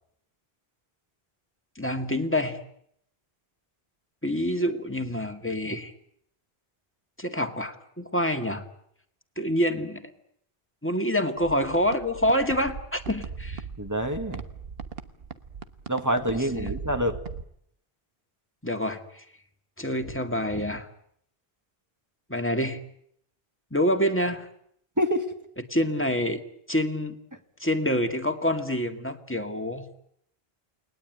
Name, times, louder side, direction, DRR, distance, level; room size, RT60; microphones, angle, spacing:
voice 1, 1.8-2.6 4.2-5.9 7.2-8.6 9.4-10.1 10.8-13.6 16.3-16.8 18.6-19.2 19.8-20.9 22.3-22.8 23.7-24.5 25.7-26.4 26.7-27.2 27.6-29.9, equal, 10° left, 6 dB, 2.0 m, -27 dB
sound 1, 11.4-17.4, right 6 dB, 70° right, 1.5 m, -39 dB
voice 2, 13.8-14.4 15.9-17.2 25.0-25.3, equal, 15° right, 6 dB, 1.9 m, -26 dB
29.5 x 20.0 x 9.2 m, 0.72 s
omnidirectional pair, 1.0 m